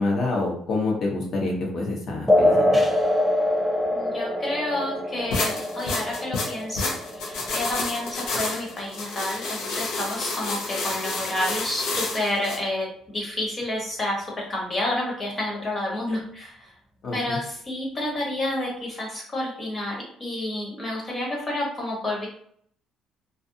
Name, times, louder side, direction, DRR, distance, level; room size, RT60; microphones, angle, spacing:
voice 1, 0.0-2.8 17.0-17.4, left 2 dB, 50° left, -1 dB, 0.9 m, -27 dB
sound 1, 2.3-9.3, left 1 dB, 5° left, 0.4 m, -25 dB
voice 2, 3.9-6.9 7.2-12.9 13.1-16.7 17.1-22.3, left 1 dB, 30° left, -3 dB, 1.1 m, -29 dB
sound 2, 5.3-12.6, left 3 dB, 85° left, 0.6 m, -30 dB
2.5 x 2.3 x 2.6 m, 0.64 s
cardioid pair, 105°, 0 cm